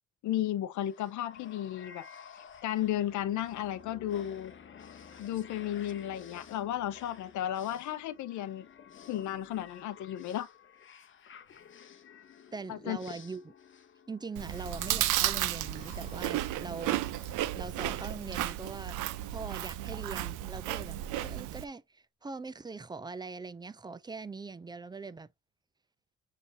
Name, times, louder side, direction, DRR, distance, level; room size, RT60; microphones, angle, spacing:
voice 1, 0.2-2.1 2.6-4.5 5.2-8.7 9.1-10.5 12.7-13.0, left 12 dB, 75° left, 0.7 m, -34 dB
sound 1, 0.8-18.4, left 7 dB, 40° left, 0.7 m, -53 dB
voice 2, 12.5-13.5 14.1-17.2 17.5-19.0 19.3-25.3, right 4 dB, 15° right, 0.3 m, -42 dB
Chewing mastication, 14.4-21.7, right 13 dB, 90° right, 0.5 m, -33 dB
6.6 x 2.6 x 2.7 m
cardioid pair, 90°, 30 cm